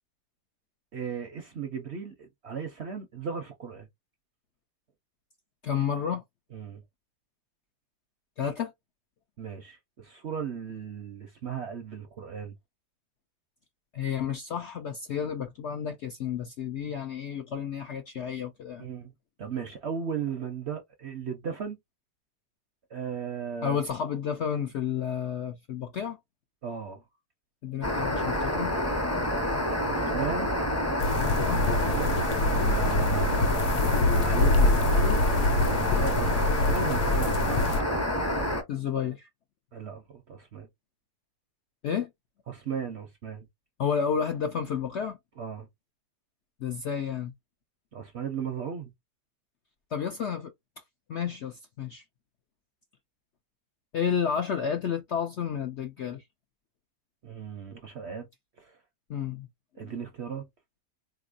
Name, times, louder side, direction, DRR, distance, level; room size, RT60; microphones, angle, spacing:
voice 1, 0.9-3.9 6.5-6.8 9.4-12.5 18.8-19.1 19.4-21.8 22.9-23.8 26.6-27.0 29.8-30.5 31.4-33.7 34.1-35.2 35.6-37.7 39.7-40.7 42.5-43.5 45.4-45.7 47.9-48.9 57.2-58.3 58.6-58.8 59.8-60.5, right 6 dB, 60° right, 0.7 m, -36 dB
voice 2, 5.6-6.2 8.4-8.7 13.9-18.9 23.6-26.2 27.6-28.8 31.2-31.6 38.7-39.3 41.8-42.1 43.8-45.2 46.6-47.3 49.9-50.5 51.1-52.0 53.9-56.2 59.1-59.5 59.8-59.9, left 7 dB, 65° left, 0.7 m, -31 dB
sound 1, 27.8-38.6, equal, 15° left, 0.5 m, -28 dB
sound 2, 31.0-37.8, left 2 dB, 85° left, 1.2 m, -25 dB
3.8 x 2.9 x 2.4 m
omnidirectional pair, 1.8 m